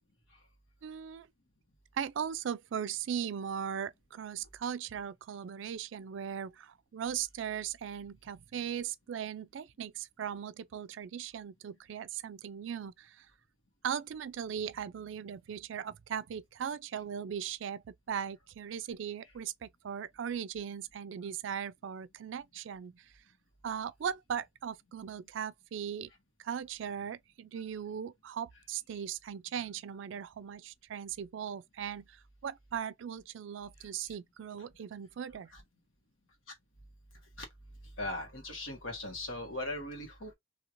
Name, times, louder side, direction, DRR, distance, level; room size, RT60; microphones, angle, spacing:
voice 1, 0.8-1.3 1.9-13.3 13.8-23.0 23.6-26.1 26.4-35.5, right 8 dB, 70° right, 0.3 m, -38 dB
voice 2, 38.0-40.3, left 1 dB, 85° left, 1.5 m, -38 dB
3.0 x 2.8 x 2.5 m
head